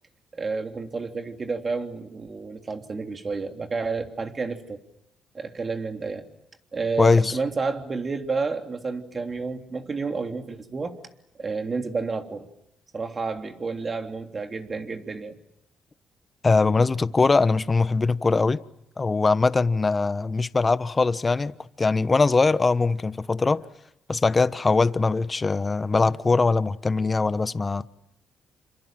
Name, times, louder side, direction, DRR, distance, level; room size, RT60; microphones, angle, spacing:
voice 1, 0.3-4.8 5.3-6.3 6.7-11.0 11.4-12.5 12.9-15.4, right 4 dB, 35° right, 3.3 m, -30 dB
voice 2, 7.0-7.4 16.4-18.6 19.0-23.7 24.1-27.9, left 3 dB, 25° left, 1.1 m, -21 dB
29.0 x 26.5 x 7.7 m
cardioid pair, 90°, 0 cm